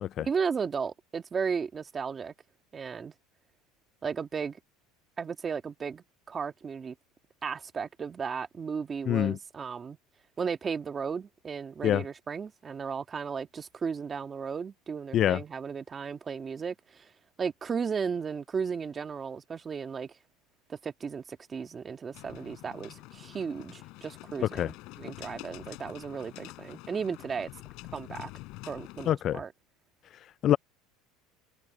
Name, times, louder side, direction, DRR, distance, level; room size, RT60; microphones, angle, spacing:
voice 1, 0.2-2.3 2.7-3.1 4.0-4.6 5.2-7.0 7.4-10.0 10.4-17.1 17.4-20.1 20.7-27.5 27.9-28.3 28.7-29.5, right 6 dB, 25° right, 1.9 m, -35 dB
voice 2, 9.1-9.4 11.8-12.0 15.1-15.4 24.6-24.7 29.1-29.4 30.4-30.6, left 11 dB, 40° left, 0.3 m, -25 dB
sound 1, 22.1-29.1, left 23 dB, 60° left, 6.1 m, -46 dB
supercardioid pair, 135°, 0 cm